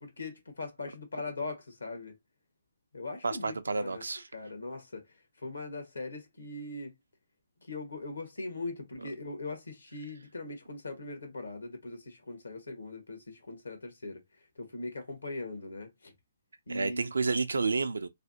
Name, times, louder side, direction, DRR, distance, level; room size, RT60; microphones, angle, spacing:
voice 1, 0.0-2.1 2.9-4.0 4.3-5.1 5.4-6.9 7.7-14.2 14.6-16.1 16.7-17.1, left 2 dB, 80° left, 1.3 m, -40 dB
voice 2, 3.2-4.3 9.0-9.1 16.7-18.1, right 4 dB, 75° right, 0.4 m, -30 dB
3.3 x 2.6 x 2.7 m
figure-of-eight pair, 130°, 0 cm